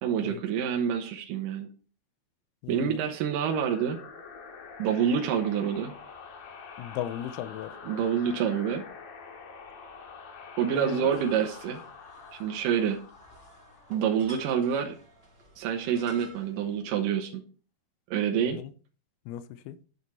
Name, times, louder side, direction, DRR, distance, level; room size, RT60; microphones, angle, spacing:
voice 1, 0.0-1.7 2.7-4.0 4.8-5.9 7.9-8.8 10.6-11.8 12.3-13.0 13.9-15.0 15.6-17.4 18.1-18.6, right 8 dB, 70° right, 4 dB, 2.2 m, -27 dB
voice 2, 2.6-3.0 6.8-7.8 10.7-11.1 18.3-18.7 19.3-19.8, left 11 dB, 80° left, 13 dB, 2.6 m, -36 dB
sound 1, 3.4-14.8, left 5 dB, 65° left, 3.4 m, -46 dB
sound 2, 11.1-16.8, right 1 dB, 30° right, 1.1 m, -52 dB
9.5 x 7.8 x 4.3 m, 0.38 s
omnidirectional pair, 4.7 m